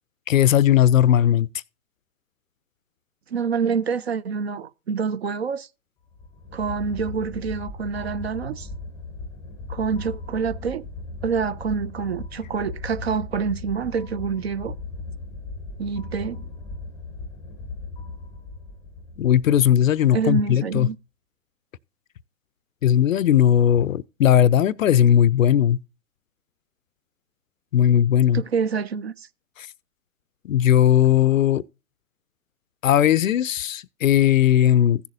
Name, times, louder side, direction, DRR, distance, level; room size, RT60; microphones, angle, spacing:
voice 1, 0.3-1.5 19.2-20.9 22.8-25.8 27.7-28.4 29.6-29.7 30.4-31.6 32.8-35.0, left 10 dB, 60° left, 0.5 m, -18 dB
voice 2, 3.3-5.7 6.5-8.7 9.7-10.9 11.2-14.8 15.8-16.5 20.1-21.0 28.3-29.3, right 6 dB, 45° right, 0.4 m, -27 dB
sound 1, 6.1-20.3, left 3 dB, 5° left, 0.6 m, -37 dB
16.0 x 6.8 x 2.6 m
figure-of-eight pair, 125°, 47 cm